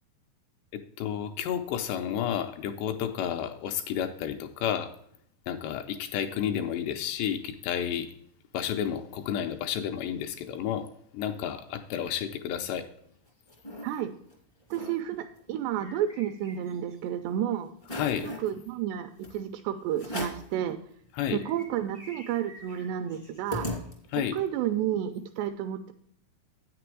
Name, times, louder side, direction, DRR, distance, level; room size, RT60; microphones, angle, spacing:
voice 1, 0.7-4.9 5.5-8.1 8.5-10.9 11.1-12.9 17.9-18.3 21.1-21.4 24.1-24.4, left 9 dB, 80° left, 7 dB, 2.6 m, -31 dB
sound 1, 13.0-13.9 14.3-14.4 14.6-15.0 15.4-16.9 17.3-17.4 17.8-18.5 19.2-19.4 20.0-20.5 21.0-21.1 21.3-24.3, left 1 dB, 35° left, 0.6 m, -39 dB
voice 2, 13.8-14.1 14.7-17.7 18.4-20.8 21.3-23.7 24.3-25.9, right 10 dB, 85° right, 8 dB, 2.5 m, -31 dB
8.9 x 6.8 x 4.6 m, 0.67 s
omnidirectional pair, 5.3 m